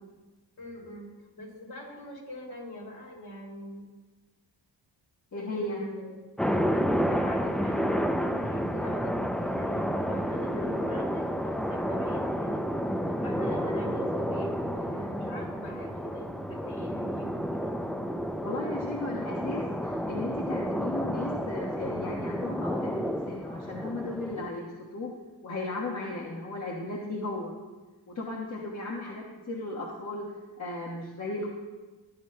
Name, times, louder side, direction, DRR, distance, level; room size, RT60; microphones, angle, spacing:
voice 1, 0.6-1.1 1.4-3.8 5.3-6.1 6.4-12.6 13.2-17.8, left 1 dB, 55° left, -1 dB, 3.1 m, -43 dB
voice 2, 5.3-5.8 18.4-24.6 24.9-25.1 25.4-27.5 28.1-30.2 30.6-31.5, left 2 dB, 40° left, -3 dB, 1.3 m, -35 dB
sound 1, 6.4-24.5, equal, ahead, 0.3 m, -30 dB
14.5 x 10.0 x 2.2 m, 1.3 s
cardioid pair, 105°, 45 cm